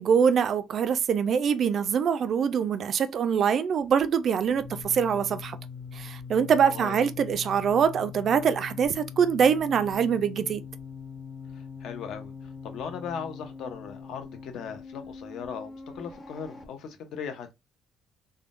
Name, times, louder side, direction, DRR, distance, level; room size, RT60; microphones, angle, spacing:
voice 1, 0.0-5.6 5.9-10.6, right 7 dB, 45° right, 0.3 m, -24 dB
sound 1, 3.8-16.7, left 6 dB, 20° left, 0.6 m, -42 dB
voice 2, 6.7-7.0 11.5-17.6, left 7 dB, 65° left, 0.7 m, -38 dB
3.5 x 2.1 x 2.4 m
cardioid pair, 160°, 0 cm